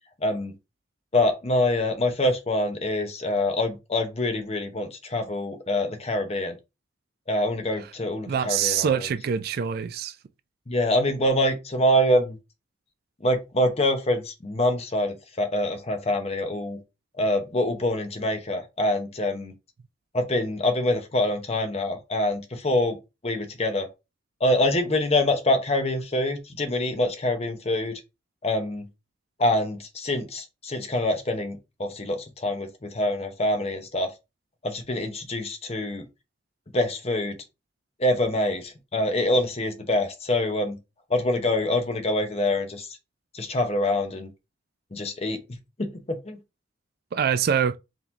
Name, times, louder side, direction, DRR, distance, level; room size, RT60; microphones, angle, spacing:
voice 1, 0.2-0.5 1.1-6.6 7.3-9.1 10.7-12.4 13.2-16.8 17.2-19.5 20.1-23.0 23.2-23.9 24.4-28.0 28.4-28.9 29.4-34.1 34.6-36.1 36.7-37.4 38.0-40.8 41.1-42.9 43.3-44.3 44.9-45.4 45.8-46.4, left 1 dB, 30° left, 0.8 m, -25 dB
voice 2, 8.3-10.2 47.1-47.8, right 8 dB, 50° right, 0.3 m, -24 dB
3.9 x 3.0 x 3.8 m
head